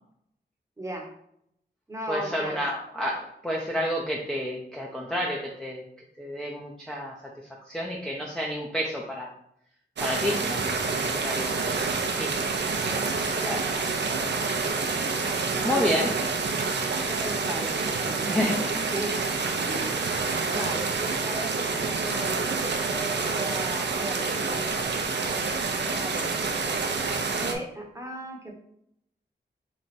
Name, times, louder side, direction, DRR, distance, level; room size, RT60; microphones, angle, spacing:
voice 1, 0.8-1.1 1.9-2.7 13.4-13.7 15.5-16.1 16.9-19.3 19.7-20.2 20.5-24.6 25.7-26.3 27.4-28.6, right 1 dB, 15° right, 1 dB, 0.8 m, -37 dB
voice 2, 2.1-5.8 6.2-7.2 7.5-9.3 10.0-12.3 12.9-13.0 13.5-13.7 15.1-16.1 18.3-18.6 20.5-20.6, equal, 5° left, -3 dB, 0.5 m, -30 dB
sound 1, 10.0-27.5, right 4 dB, 75° right, 0.6 m, -28 dB
3.4 x 3.2 x 4.2 m, 0.72 s
wide cardioid pair, 140°, 18 cm